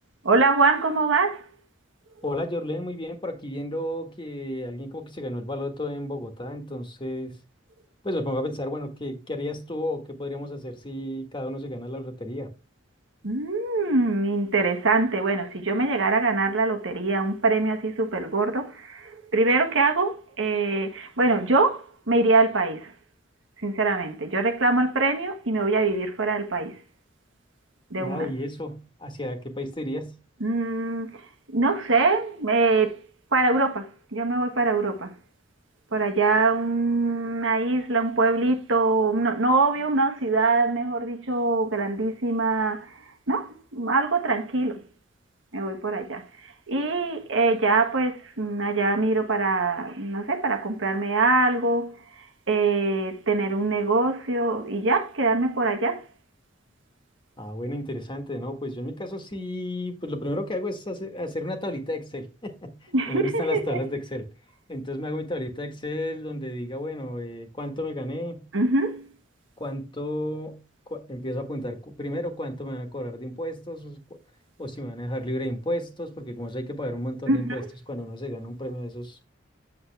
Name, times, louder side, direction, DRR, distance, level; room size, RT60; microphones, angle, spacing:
voice 1, 0.2-1.5 13.2-22.9 23.6-26.8 27.9-28.3 30.4-33.0 33.3-35.1 35.9-44.8 45.5-56.1 62.9-63.8 68.5-69.1 77.3-77.7, right 3 dB, 90° right, 1.5 m, -24 dB
voice 2, 2.2-7.4 8.0-12.5 27.9-30.1 57.4-62.8 63.1-64.3 64.7-68.4 69.6-70.6 70.9-74.0 74.6-79.2, left 1 dB, 25° left, 1.5 m, -32 dB
8.4 x 7.1 x 3.3 m
head